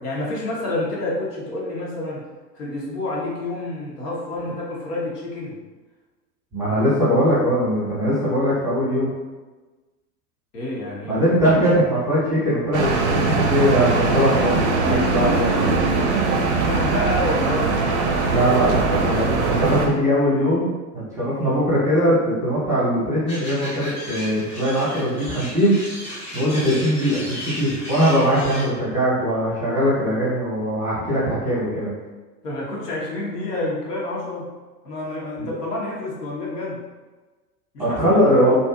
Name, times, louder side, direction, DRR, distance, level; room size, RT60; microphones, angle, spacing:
voice 1, 0.0-2.2 2.5-5.6 10.5-11.2 16.6-17.7 32.4-34.5 34.8-36.8 37.7-38.5, left 1 dB, 70° left, -5 dB, 0.9 m, -28 dB
voice 2, 6.5-9.1 11.0-15.7 18.3-20.7 21.2-25.8 26.3-31.9 35.4-35.5 37.8-38.6, equal, 5° right, -10 dB, 0.8 m, -21 dB
sound 1, 12.7-19.9, right 3 dB, 50° right, 0.5 m, -21 dB
sound 2, 23.3-28.6, equal, 15° left, 0.5 m, -34 dB
2.6 x 2.4 x 2.3 m, 1.3 s
figure-of-eight pair, 95°, 49 cm